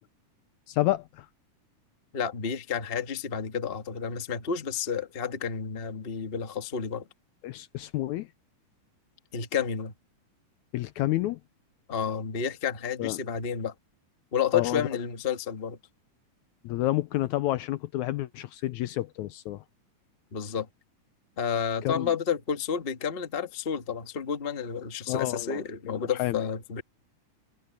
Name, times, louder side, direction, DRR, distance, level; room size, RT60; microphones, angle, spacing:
voice 1, 0.7-1.3 7.4-8.3 10.7-11.4 13.0-13.2 14.5-14.9 16.6-19.6 21.8-22.1 25.1-26.4, left 16 dB, 80° left, 1.8 m, -29 dB
voice 2, 2.1-7.0 9.3-9.9 11.9-13.7 14.3-15.8 20.3-20.7 21.4-26.8, left 7 dB, 65° left, 0.5 m, -30 dB
omnidirectional pair, 3.8 m